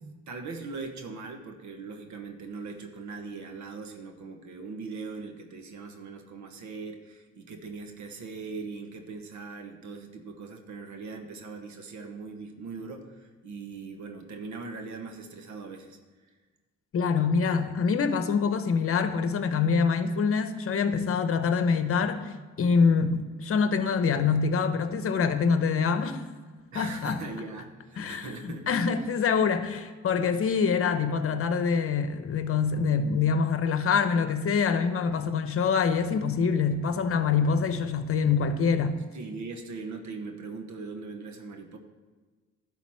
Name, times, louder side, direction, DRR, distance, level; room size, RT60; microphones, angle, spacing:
voice 1, 0.3-16.0 26.7-28.8 39.1-41.8, right 4 dB, 70° right, 5 dB, 1.2 m, -40 dB
voice 2, 16.9-22.2 22.6-26.2 26.7-27.2 28.0-38.9, left 5 dB, 45° left, 9 dB, 0.9 m, -25 dB
11.5 x 4.0 x 7.5 m, 1.3 s
cardioid pair, 90°, 30 cm